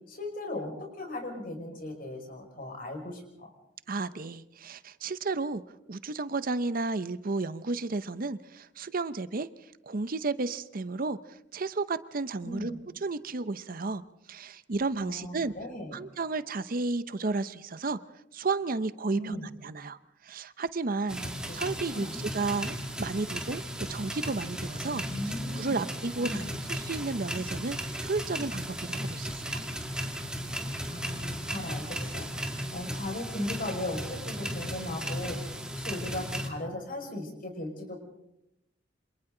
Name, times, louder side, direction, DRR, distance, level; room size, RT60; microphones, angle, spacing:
voice 1, 0.1-3.5 12.4-12.8 15.0-16.0 19.1-19.5 21.1-21.6 21.8-22.2 24.8-25.8 26.2-26.5 30.9-38.0, left 1 dB, 50° left, 2 dB, 5.6 m, -37 dB
voice 2, 3.9-5.6 5.9-12.7 13.0-14.0 14.3-15.5 15.9-18.0 18.3-19.4 19.6-21.2 21.5-25.0 25.5-29.6, right 3 dB, 50° right, 14 dB, 0.7 m, -33 dB
sound 1, 21.1-36.5, equal, 5° right, 2.2 m, -36 dB
28.0 x 26.5 x 3.9 m, 0.80 s
head